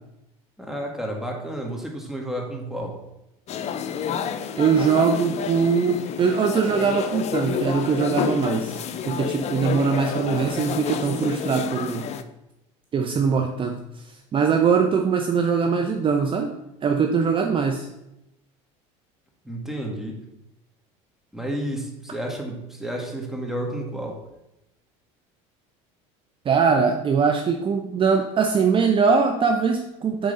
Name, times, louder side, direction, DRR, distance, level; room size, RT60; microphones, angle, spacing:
voice 1, 0.6-3.0 19.4-20.2 21.3-24.2, right 1 dB, 5° right, 0 dB, 1.9 m, -31 dB
sound 1, 3.5-12.2, left 7 dB, 45° left, 0.7 m, -29 dB
voice 2, 4.6-12.1 12.9-16.5 16.8-17.9 26.4-30.3, right 5 dB, 35° right, 4 dB, 0.8 m, -22 dB
8.7 x 3.8 x 5.5 m, 0.88 s
supercardioid pair, 100°, 16 cm